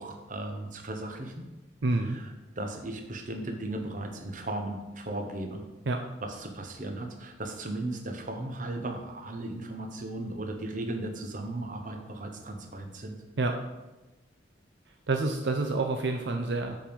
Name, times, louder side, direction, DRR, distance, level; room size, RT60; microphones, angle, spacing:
voice 1, 0.0-1.3 2.0-2.3 2.6-5.6 6.2-13.2, right 2 dB, 45° right, 4 dB, 1.0 m, -36 dB
voice 2, 1.8-2.2 5.9-6.0 13.4-13.6 15.1-16.8, right 3 dB, 70° right, 4 dB, 0.6 m, -28 dB
7.5 x 5.3 x 5.3 m, 1.1 s
head